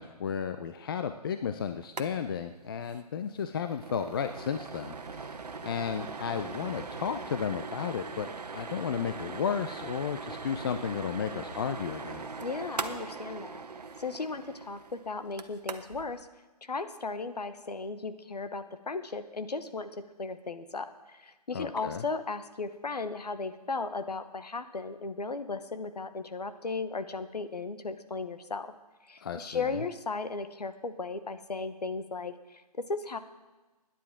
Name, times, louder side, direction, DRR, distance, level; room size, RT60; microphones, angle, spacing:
voice 1, 0.0-8.3 8.5-12.2 21.5-22.0 29.2-29.8, left 7 dB, 35° left, 8 dB, 0.5 m, -33 dB
sound 1, 1.8-2.1 2.4-2.5 2.8-3.0 3.4-16.1, right 4 dB, 80° right, 1.1 m, -40 dB
voice 2, 12.4-13.6 14.0-16.3 16.6-28.7 29.1-33.2, left 4 dB, 85° left, 10 dB, 1.1 m, -36 dB
21.0 x 10.0 x 3.7 m, 1.2 s
figure-of-eight pair, 145°, 20 cm